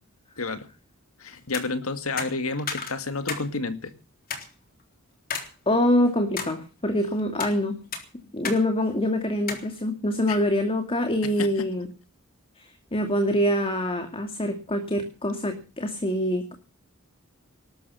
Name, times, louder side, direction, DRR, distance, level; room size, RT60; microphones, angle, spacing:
voice 1, 0.4-0.7 1.2-3.9 10.3-10.4 11.4-11.5, left 3 dB, 75° left, 10 dB, 2.2 m, -30 dB
sound 1, 1.4-1.7 2.2-3.5 3.8-3.9 4.3-4.5 5.3-5.5 5.9-6.5 7.2-7.5 7.9-8.6 8.9-9.0 9.5-9.7, left 5 dB, 45° left, 3.7 m, -33 dB
voice 2, 5.7-7.8 8.3-11.9 12.6-16.5, left 1 dB, 25° left, 6 dB, 2.4 m, -25 dB
19.5 x 13.0 x 5.7 m, 0.36 s
head